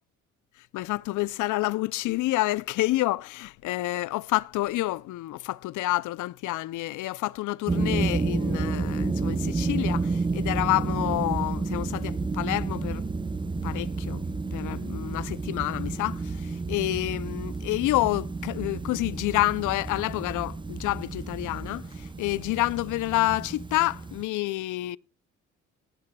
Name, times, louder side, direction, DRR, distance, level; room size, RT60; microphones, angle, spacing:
voice 1, 0.7-13.1 13.6-14.2 14.5-25.0, left 18 dB, 80° left, 0.5 m, -28 dB
sound 1, 7.7-24.2, right 3 dB, 15° right, 0.6 m, -30 dB
18.5 x 13.0 x 2.3 m
cardioid pair, 90°, 30 cm